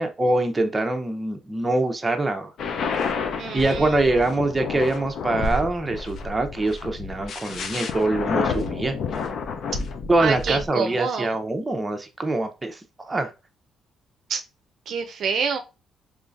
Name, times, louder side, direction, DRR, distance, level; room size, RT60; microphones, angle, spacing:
voice 1, 0.0-2.5 3.5-8.9 10.1-13.3, right 2 dB, 20° right, 5 dB, 0.7 m, -24 dB
sound 1, 2.6-10.7, left 5 dB, 65° left, 0.6 m, -30 dB
voice 2, 3.4-4.1 10.2-11.3 14.3-14.4 14.9-15.6, right 6 dB, 65° right, 6 dB, 0.5 m, -27 dB
3.8 x 3.1 x 2.5 m, 0.28 s
cardioid pair, 90°, 0 cm